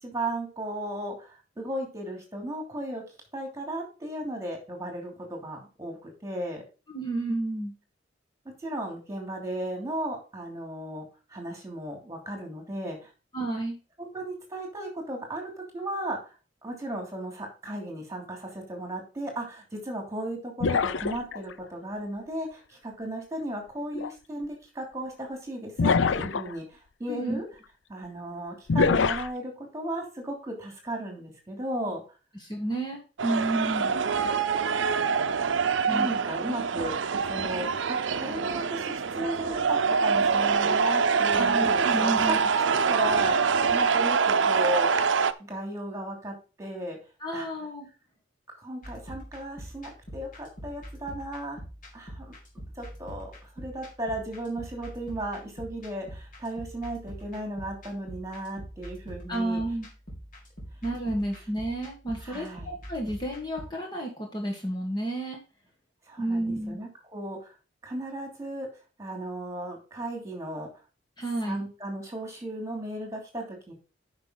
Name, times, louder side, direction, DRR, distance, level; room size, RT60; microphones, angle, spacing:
voice 1, 0.0-3.0 3.3-6.6 8.4-13.1 14.0-16.3 16.6-27.4 27.9-32.0 33.5-33.9 35.9-36.9 37.2-44.9 45.5-47.0 47.3-47.5 48.6-51.6 51.9-52.3 52.7-59.6 62.2-62.8 66.0-67.5 67.8-68.7 69.0-70.7 71.4-73.7, right 1 dB, 15° right, 1 dB, 3.0 m, -35 dB
voice 2, 6.9-7.7 13.3-13.8 27.1-27.4 32.4-33.8 35.9-36.2 36.5-36.6 41.3-42.4 47.2-47.9 59.3-59.9 60.8-65.4 66.2-66.8 71.2-71.6, right 1 dB, 25° left, 0 dB, 1.7 m, -31 dB
sound 1, 20.6-21.5 23.9-24.1 25.8-26.5 28.7-29.3, left 4 dB, 80° left, 0.5 m, -24 dB
sound 2, 33.2-45.3, right 5 dB, 85° right, 0.6 m, -25 dB
sound 3, 48.8-63.7, equal, 45° left, 3.5 m, -44 dB
9.6 x 5.8 x 4.0 m, 0.32 s
head